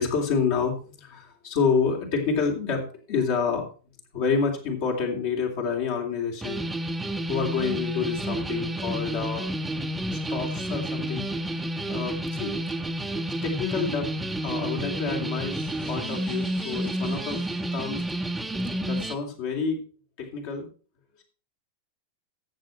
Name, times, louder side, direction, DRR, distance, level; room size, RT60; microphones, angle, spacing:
voice 1, 0.0-6.6 7.3-9.5 10.3-11.6 11.9-12.5 13.4-14.1 14.4-19.9 20.2-20.7, left 5 dB, 50° left, 2 dB, 3.1 m, -28 dB
sound 1, 6.4-19.2, right 1 dB, 5° right, 1.0 m, -30 dB
14.0 x 7.6 x 4.4 m, 0.38 s
figure-of-eight pair, 90°, 0 cm